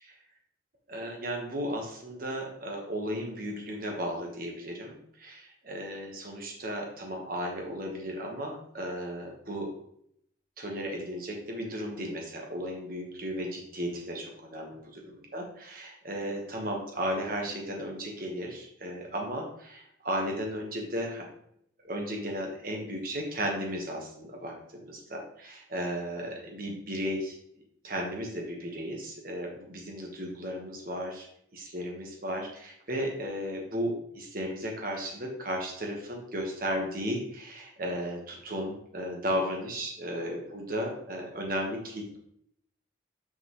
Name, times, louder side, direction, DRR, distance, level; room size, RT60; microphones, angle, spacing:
voice 1, 0.9-9.7 10.6-21.3 21.8-24.5 24.8-27.4 27.8-42.2, equal, 50° right, 1 dB, 1.4 m, -35 dB
5.9 x 5.3 x 3.1 m, 0.70 s
head